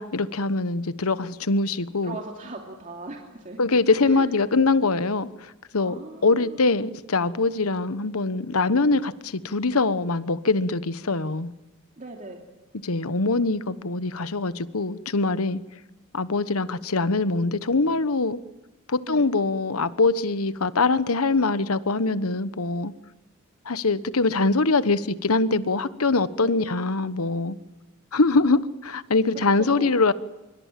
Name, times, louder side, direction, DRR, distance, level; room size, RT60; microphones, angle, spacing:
voice 1, 0.0-2.2 3.6-9.1 9.4-11.5 12.8-15.6 16.1-18.4 18.9-22.9 23.6-27.6 28.1-30.1, left 3 dB, 90° left, 14 dB, 1.2 m, -23 dB
voice 2, 2.0-3.6 4.0-4.3 5.8-6.7 12.0-12.4 19.1-19.3 26.4-26.7 29.6-29.9, right 2 dB, 40° right, 1 dB, 2.8 m, -39 dB
25.5 x 24.0 x 7.6 m, 1.0 s
head